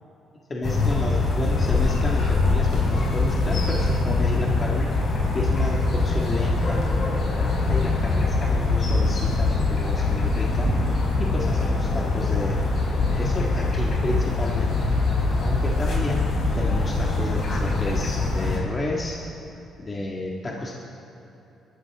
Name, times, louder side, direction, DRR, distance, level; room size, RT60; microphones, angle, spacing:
voice 1, 0.5-4.9 5.3-10.7 11.2-12.7 13.1-14.7 15.4-16.3 16.6-19.2 19.8-20.7, left 1 dB, 30° left, -3 dB, 1.9 m, -31 dB
sound 1, 0.6-18.6, left 3 dB, 55° left, 4.3 m, -23 dB
sound 2, 10.7-14.6, right 2 dB, 50° right, 3.9 m, -37 dB
23.0 x 13.5 x 3.6 m, 2.9 s
cardioid pair, 90°, 0 cm